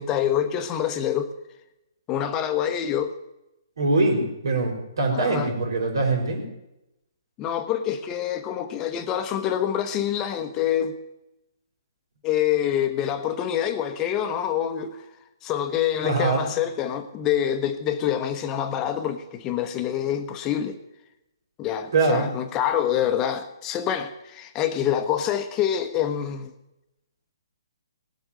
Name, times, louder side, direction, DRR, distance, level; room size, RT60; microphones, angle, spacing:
voice 1, 0.0-1.3 2.1-3.1 5.1-5.5 7.4-10.9 12.2-15.0 15.4-20.8 21.6-26.5, left 10 dB, 20° left, 8 dB, 1.0 m, -26 dB
voice 2, 3.8-6.5 16.0-16.5 21.9-22.3, right 3 dB, 70° right, 2 dB, 5.2 m, -23 dB
18.5 x 8.0 x 9.0 m, 0.90 s
hypercardioid pair, 150°, 2 cm